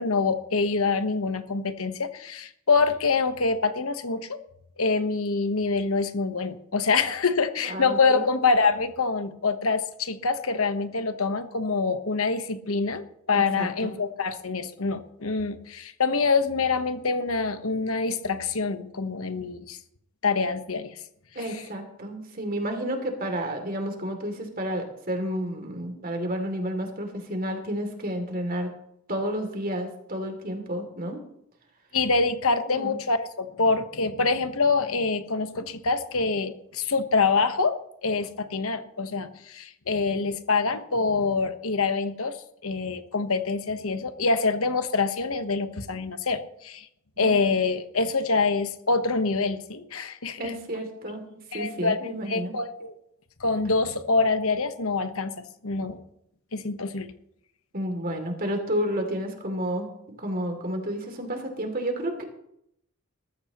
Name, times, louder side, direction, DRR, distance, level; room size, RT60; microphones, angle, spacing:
voice 1, 0.0-4.4 4.8-19.8 20.2-20.9 31.9-37.7 38.0-42.4 42.6-46.9 47.2-50.5 51.5-52.9 53.4-56.0 56.5-57.1, left 4 dB, 70° left, 9 dB, 1.2 m, -25 dB
voice 2, 7.6-8.3 13.3-13.9 21.3-28.7 29.1-31.2 32.7-33.0 47.2-47.4 50.4-51.2 51.5-52.6 57.7-59.9 60.2-62.2, equal, 40° right, 4 dB, 2.9 m, -31 dB
20.5 x 14.0 x 3.1 m, 0.75 s
head